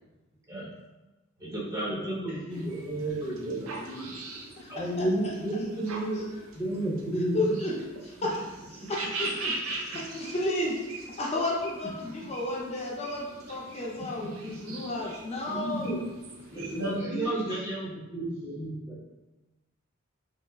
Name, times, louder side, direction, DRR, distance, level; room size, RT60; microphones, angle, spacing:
voice 1, 1.4-4.1 4.7-6.2 6.5-7.6 14.2-14.4 15.5-16.1 16.5-19.0, right 1 dB, 15° right, -7 dB, 0.7 m, -32 dB
sound 1, 2.5-17.0, right 2 dB, 85° right, 0.5 m, -41 dB
voice 2, 7.3-7.7 8.0-8.4 8.7-10.7 11.2-16.0, left 1 dB, 30° left, -3 dB, 0.5 m, -32 dB
voice 3, 16.5-17.4, equal, 65° right, -15 dB, 1.3 m, -36 dB
3.0 x 2.7 x 2.2 m, 1.1 s
head